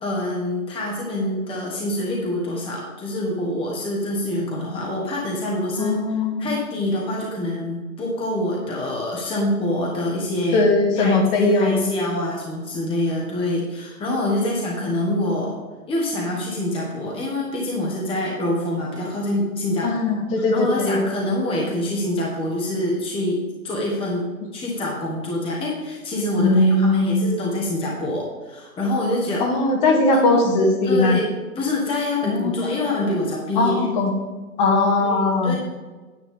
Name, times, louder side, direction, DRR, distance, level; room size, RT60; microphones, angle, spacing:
voice 1, 0.0-10.7 11.0-15.6 15.9-19.9 20.4-29.5 30.1-31.2 31.5-33.9 35.0-35.6, left 1 dB, 10° left, -2 dB, 1.5 m, -26 dB
voice 2, 5.8-6.6 10.5-11.8 19.8-21.0 26.4-27.3 29.4-31.2 32.2-32.8 33.6-34.1 34.6-35.6, left 2 dB, 30° left, 2 dB, 1.8 m, -19 dB
9.6 x 9.2 x 3.6 m, 1.3 s
hypercardioid pair, 125°, 43 cm